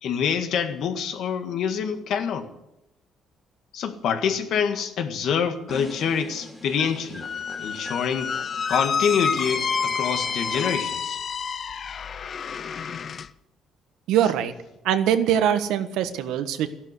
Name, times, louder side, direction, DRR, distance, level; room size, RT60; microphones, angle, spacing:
voice 1, 0.0-2.5 3.7-7.3 7.6-8.4 8.7-11.2, left 7 dB, 70° left, 1.7 m, -26 dB
sound 1, 5.7-11.1, left 1 dB, 5° left, 3.0 m, -38 dB
Squeak, 7.2-13.3, left 6 dB, 45° left, 0.6 m, -29 dB
voice 2, 14.1-14.5 14.8-16.7, right 10 dB, 90° right, 1.4 m, -22 dB
14.0 x 11.5 x 8.2 m
cardioid pair, 120°, 0 cm